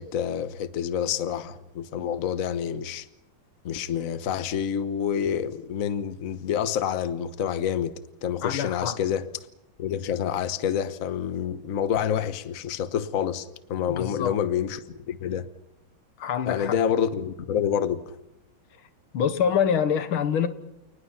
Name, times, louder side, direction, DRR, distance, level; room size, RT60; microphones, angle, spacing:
voice 1, 0.0-3.1 3.6-7.9 8.2-9.3 9.8-15.5 16.5-18.1, left 8 dB, 50° left, 1.3 m, -28 dB
voice 2, 8.4-9.0 13.9-14.3 16.2-16.7 19.1-20.5, left 8 dB, 85° left, 2.1 m, -25 dB
29.0 x 19.5 x 5.8 m
omnidirectional pair, 2.2 m